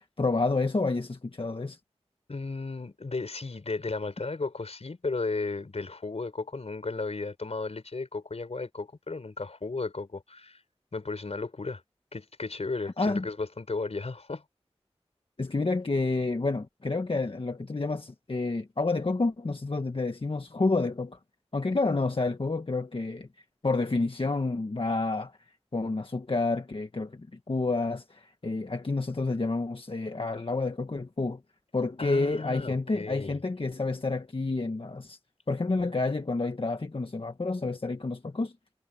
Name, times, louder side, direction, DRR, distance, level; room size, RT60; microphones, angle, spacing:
voice 1, 0.0-1.8 13.0-13.3 15.4-21.2 21.5-23.3 23.6-25.3 25.7-31.4 31.7-35.2 35.5-38.5, left 3 dB, 55° left, 1.5 m, -29 dB
voice 2, 2.3-10.6 10.9-11.8 12.1-14.4 32.0-33.4, left 3 dB, 75° left, 4.7 m, -34 dB
wide cardioid pair, 60°, 11 cm